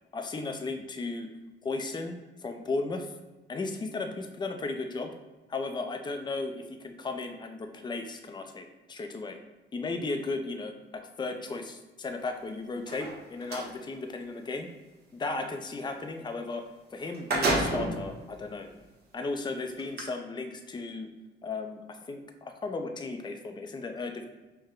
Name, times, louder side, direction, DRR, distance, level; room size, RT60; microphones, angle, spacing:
voice 1, 0.1-1.3 1.6-3.1 3.5-5.1 5.5-9.4 9.7-14.7 15.1-16.6 16.9-18.7 19.1-21.1 21.4-24.3, left 3 dB, 20° left, 5 dB, 0.5 m, -35 dB
sound 1, 12.8-13.7 16.6-16.7 17.0-18.1 18.7-18.8 19.8-20.0, right 2 dB, 55° right, 1.2 m, -29 dB
5.4 x 2.1 x 3.7 m, 1.2 s
cardioid pair, 90°, 20 cm